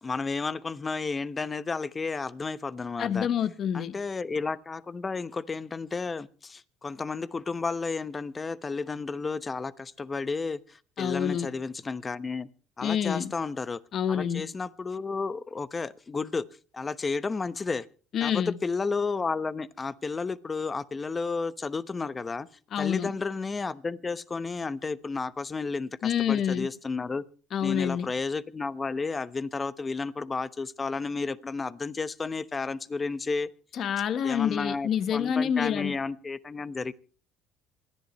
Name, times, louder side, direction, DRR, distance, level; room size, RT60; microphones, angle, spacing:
voice 1, 0.0-3.3 3.7-12.5 12.8-13.8 14.1-16.4 16.7-17.9 18.2-22.5 22.8-27.2 27.6-33.5 34.2-36.9, left 4 dB, 25° left, 1.0 m, -32 dB
voice 2, 3.0-3.9 11.0-11.5 12.8-13.3 13.9-14.5 18.1-18.6 22.7-23.1 26.0-26.7 27.5-28.1 33.8-36.0, left 8 dB, 55° left, 1.2 m, -27 dB
27.5 x 10.5 x 3.2 m
supercardioid pair, 85°, 0 cm